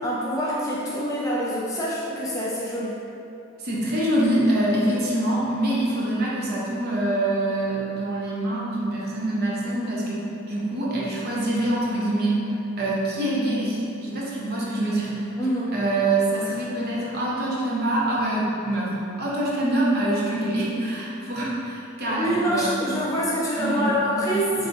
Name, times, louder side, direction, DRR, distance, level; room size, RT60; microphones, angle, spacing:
voice 1, 0.0-3.0 15.4-15.7 22.1-24.7, equal, 15° left, -6 dB, 0.4 m, -25 dB
voice 2, 3.6-12.4 12.8-15.2 15.7-22.9 23.6-24.7, right 1 dB, 45° right, -5 dB, 0.7 m, -25 dB
3.7 x 3.3 x 2.6 m, 2.8 s
head